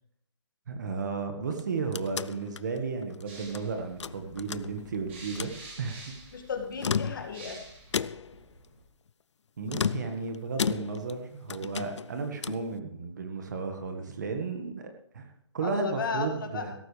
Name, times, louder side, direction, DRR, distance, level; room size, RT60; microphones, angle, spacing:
voice 1, 0.7-5.5 5.8-6.0 9.6-14.9 15.1-15.3 15.5-16.7, right 4 dB, 40° right, 5 dB, 1.7 m, -34 dB
sound 1, 1.5-3.6 4.0-5.0 5.3-5.6 6.6-7.5 7.9-8.4 9.7-11.2 11.5-12.7, left 6 dB, 75° left, 0.6 m, -34 dB
sound 2, 3.3-8.8, right 2 dB, 25° right, 3.0 m, -49 dB
voice 2, 6.3-7.6 15.6-16.8, left 5 dB, 45° left, 3 dB, 2.1 m, -34 dB
17.0 x 14.0 x 3.4 m, 0.68 s
hypercardioid pair, 175°, 15 cm